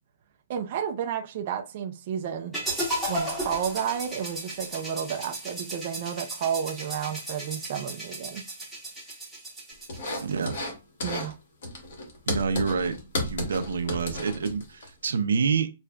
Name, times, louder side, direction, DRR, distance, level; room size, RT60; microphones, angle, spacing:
voice 1, 0.5-2.5 3.1-8.4 11.0-11.4, right 8 dB, 35° right, 0.4 m, -31 dB
sound 1, 2.5-10.6, right 1 dB, 5° left, 1.1 m, -35 dB
sound 2, 9.9-10.7 11.0-11.3 11.6-14.9, left 1 dB, 50° left, 1.3 m, -33 dB
voice 2, 10.2-10.6 12.3-13.0 13.2-15.7, right 5 dB, 80° right, 0.6 m, -27 dB
6.2 x 2.4 x 2.3 m
hypercardioid pair, 170°, 0 cm